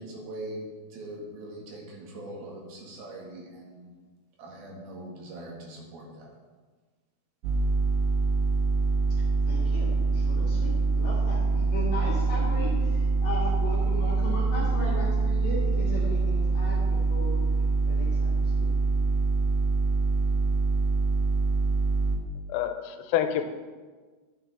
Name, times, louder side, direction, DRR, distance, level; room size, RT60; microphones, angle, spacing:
voice 1, 0.0-3.9 4.4-6.3, right 1 dB, 60° right, -1 dB, 3.1 m, -41 dB
sound 1, 7.4-22.2, right 4 dB, 80° right, 2.3 m, -25 dB
voice 2, 9.4-17.4 17.9-18.7, left 2 dB, 50° left, -7 dB, 2.5 m, -36 dB
voice 3, 22.5-23.4, left 11 dB, 85° left, 8 dB, 3.3 m, -27 dB
12.5 x 9.7 x 3.5 m, 1.4 s
omnidirectional pair, 5.9 m